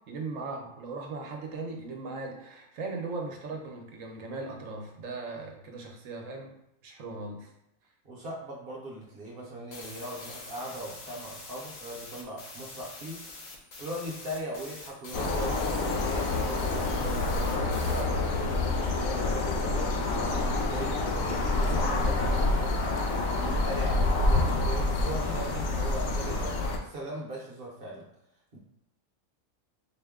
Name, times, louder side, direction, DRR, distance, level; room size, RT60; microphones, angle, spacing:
voice 1, 0.1-6.5 6.8-7.5, right 3 dB, 75° right, 2 dB, 1.1 m, -38 dB
voice 2, 8.0-13.3 13.8-21.0 21.5-28.0 28.5-28.6, right 1 dB, 50° right, -3 dB, 0.9 m, -39 dB
sound 1, 9.7-18.0, left 2 dB, 45° left, 0.6 m, -45 dB
sound 2, 15.1-26.8, left 2 dB, 90° left, 1.0 m, -27 dB
4.3 x 2.1 x 3.5 m, 0.81 s
omnidirectional pair, 1.4 m